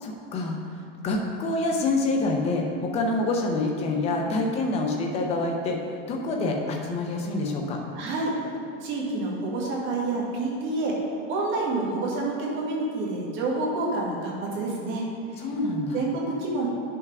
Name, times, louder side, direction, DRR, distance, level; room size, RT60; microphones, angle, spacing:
voice 1, 0.0-0.6 1.0-5.8 6.1-7.8 15.4-16.1, left 2 dB, 15° left, 1 dB, 0.6 m, -26 dB
voice 2, 7.9-8.3 8.8-11.0 11.3-15.0 15.9-16.7, right 2 dB, 30° right, -3 dB, 1.5 m, -28 dB
9.1 x 5.8 x 3.5 m, 2.7 s
supercardioid pair, 160°, 38 cm